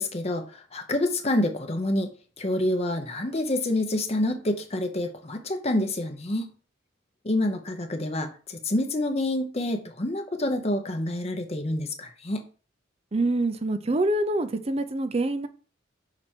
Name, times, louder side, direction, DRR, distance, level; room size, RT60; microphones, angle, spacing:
voice 1, 0.0-2.1 2.4-6.5 7.2-12.4, left 1 dB, 30° left, 5 dB, 0.8 m, -27 dB
voice 2, 13.1-15.5, right 2 dB, 30° right, 11 dB, 0.5 m, -25 dB
6.0 x 4.5 x 4.4 m, 0.38 s
head